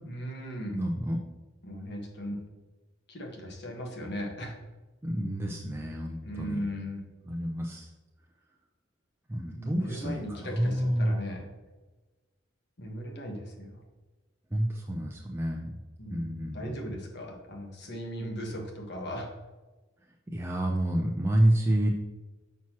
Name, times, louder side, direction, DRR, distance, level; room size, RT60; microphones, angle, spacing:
voice 1, 0.1-0.8 1.6-2.4 3.1-4.6 6.2-7.0 9.5-11.5 12.8-13.8 16.0-19.3, equal, 60° left, 1 dB, 1.3 m, -37 dB
voice 2, 0.7-1.2 5.0-6.6 7.3-7.9 9.3-11.2 14.5-15.7 16.1-17.0 20.3-21.9, right 1 dB, 15° right, -1 dB, 0.5 m, -29 dB
5.9 x 5.9 x 2.9 m, 1.2 s
head